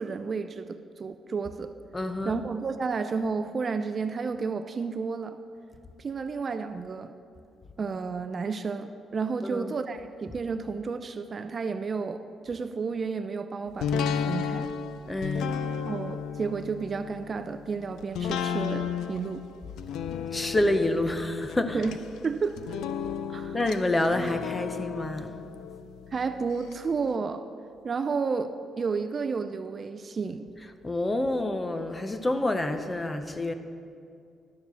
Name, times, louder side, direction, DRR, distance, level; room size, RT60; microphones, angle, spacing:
voice 1, 0.0-1.7 2.3-5.4 6.0-7.1 7.8-14.7 15.9-19.4 21.7-22.0 22.2-22.8 23.3-23.6 26.1-27.5 27.8-30.5, right 5 dB, 30° right, 9 dB, 0.4 m, -31 dB
voice 2, 1.9-2.4 9.4-9.7 15.1-15.6 20.1-21.8 23.5-25.4 30.8-33.5, left 1 dB, 15° left, 8 dB, 0.6 m, -28 dB
sound 1, 13.8-26.7 27.1-27.2, left 7 dB, 90° left, 0.5 m, -34 dB
11.5 x 7.0 x 6.9 m, 2.4 s
cardioid pair, 145°, 0 cm